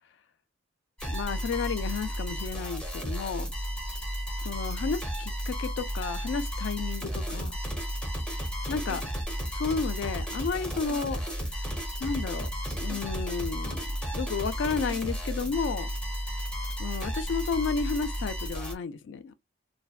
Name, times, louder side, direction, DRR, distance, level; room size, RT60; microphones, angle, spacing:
sound 1, 1.0-18.7, equal, 5° left, 0.6 m, -33 dB
voice 1, 1.1-3.5 4.4-7.5 8.7-9.0 9.5-11.6 12.0-12.5 12.8-13.9 14.1-15.9 16.8-19.3, left 5 dB, 65° left, 0.3 m, -32 dB
2.5 x 2.1 x 2.3 m
head